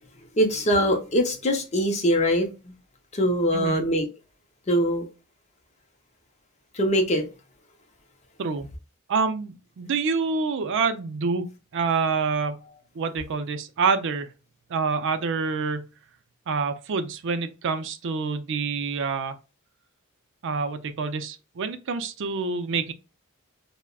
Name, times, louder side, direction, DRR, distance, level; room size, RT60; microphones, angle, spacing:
voice 1, 0.4-2.7 3.1-4.1 4.7-5.0 6.7-7.2, equal, 30° left, 0.6 m, -22 dB
voice 2, 3.5-3.8 8.4-8.7 9.1-11.5 11.7-12.6 12.9-14.3 14.7-15.8 16.5-19.4 20.4-22.9, right 4 dB, 60° right, 0.4 m, -27 dB
3.4 x 2.1 x 2.3 m
head